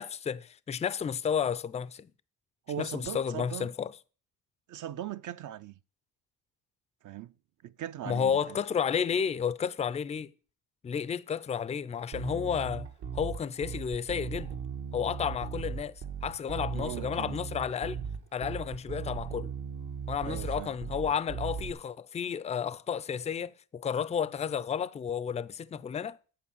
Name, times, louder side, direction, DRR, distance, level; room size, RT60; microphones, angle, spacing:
voice 1, 0.0-2.1 2.8-4.0 8.1-10.3 10.8-12.9 13.1-14.5 14.9-18.0 18.3-19.5 20.1-26.2, left 7 dB, 20° left, 0.3 m, -32 dB
voice 2, 2.7-3.7 4.7-5.7 7.0-7.3 7.6-8.6 16.7-17.3 20.2-20.7, right 11 dB, 50° right, 0.4 m, -39 dB
Bass guitar, 12.1-21.7, right 7 dB, 85° right, 1.7 m, -38 dB
8.6 x 4.5 x 7.2 m
cardioid pair, 85°, 40 cm